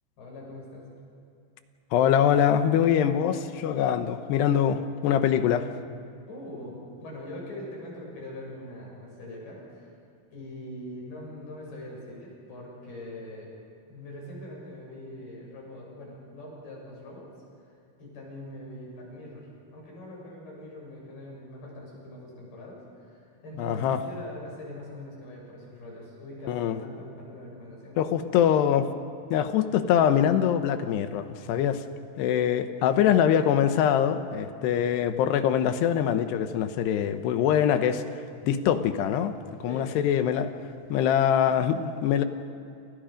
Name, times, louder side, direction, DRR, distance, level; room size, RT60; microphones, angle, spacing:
voice 1, 0.2-1.0 6.3-9.9 10.3-13.5 13.9-17.3 18.0-19.4 19.7-28.2 39.7-40.0, left 1 dB, 70° left, -3 dB, 9.1 m, -42 dB
voice 2, 1.9-5.7 23.6-24.0 26.5-26.8 28.0-28.9 29.3-31.8 32.2-38.0 38.4-39.4 39.6-40.5 40.9-42.2, left 9 dB, 90° left, 9 dB, 3.2 m, -23 dB
29.0 x 28.0 x 5.2 m, 2.5 s
omnidirectional pair, 4.7 m